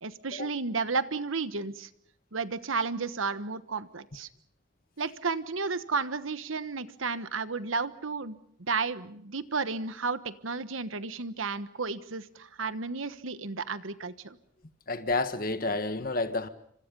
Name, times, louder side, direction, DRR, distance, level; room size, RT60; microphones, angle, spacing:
voice 1, 0.0-1.9 2.3-4.3 5.0-14.4, right 4 dB, 85° right, 1.2 m, -33 dB
voice 2, 14.9-16.5, left 2 dB, 45° left, 1.6 m, -30 dB
29.0 x 25.5 x 5.4 m
head